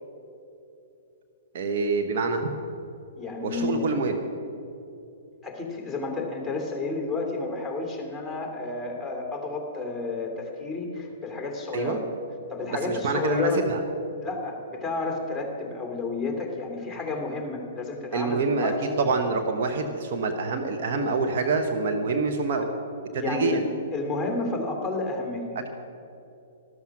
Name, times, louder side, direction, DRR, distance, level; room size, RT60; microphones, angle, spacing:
voice 1, 1.5-2.5 3.4-4.2 11.7-12.0 12.8-13.8 18.1-18.7 19.0-22.7 23.1-23.7, right 3 dB, 55° right, 5 dB, 1.1 m, -26 dB
voice 2, 3.2-3.9 5.4-12.0 12.5-13.8 14.2-19.0 23.1-25.5, left 3 dB, ahead, 1 dB, 2.7 m, -31 dB
13.0 x 13.0 x 6.0 m, 2.8 s
figure-of-eight pair, 115°, 0 cm